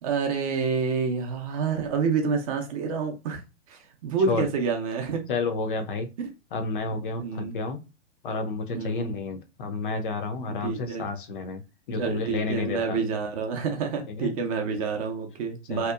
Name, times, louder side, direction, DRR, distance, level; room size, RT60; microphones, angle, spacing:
voice 1, 0.0-3.4 3.7-5.2 6.2-6.3 6.9-7.5 8.7-9.1 10.5-11.1 11.9-15.9, right 5 dB, 30° right, 3 dB, 0.5 m, -28 dB
voice 2, 5.3-6.1 6.5-7.8 8.2-11.6 11.9-13.0 14.1-14.3 15.7-15.9, left 4 dB, 45° left, 6 dB, 0.5 m, -30 dB
2.8 x 2.0 x 2.2 m, 0.27 s
hypercardioid pair, 120°, 37 cm